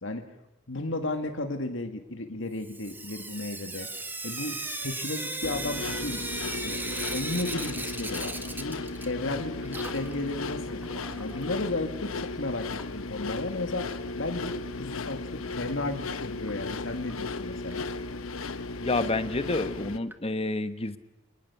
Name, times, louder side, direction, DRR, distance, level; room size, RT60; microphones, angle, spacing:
voice 1, 0.7-3.9 4.2-4.6 4.8-6.3 6.6-10.8 11.2-17.9, left 2 dB, 65° left, 6 dB, 2.2 m, -34 dB
Sink (filling or washing) / Drip, 2.6-9.4 9.6-11.6 12.7-12.8 13.1-13.2 13.5-13.6 16.5-16.6 17.1-17.2 17.7-17.8 18.4-18.5 19.1-19.2 20.1-20.2, right 2 dB, 10° right, 1.6 m, -37 dB
sound 1, 5.4-20.0, left 3 dB, 85° left, 1.0 m, -35 dB
voice 2, 18.8-21.0, left 2 dB, 30° left, 11 dB, 1.2 m, -29 dB
26.5 x 20.0 x 7.1 m, 0.95 s
head